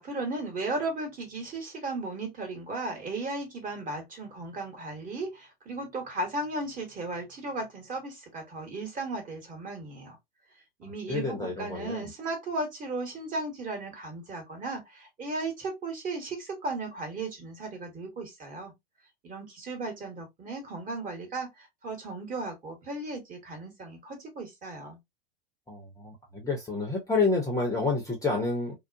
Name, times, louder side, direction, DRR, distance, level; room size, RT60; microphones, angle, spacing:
voice 1, 0.0-10.2 10.8-18.7 19.2-25.0, right 2 dB, 25° right, 1.2 m, -36 dB
voice 2, 10.8-12.1 25.7-26.2 26.4-28.7, left 3 dB, 10° left, 0.7 m, -29 dB
2.5 x 2.1 x 2.5 m
hypercardioid pair, 105°, 31 cm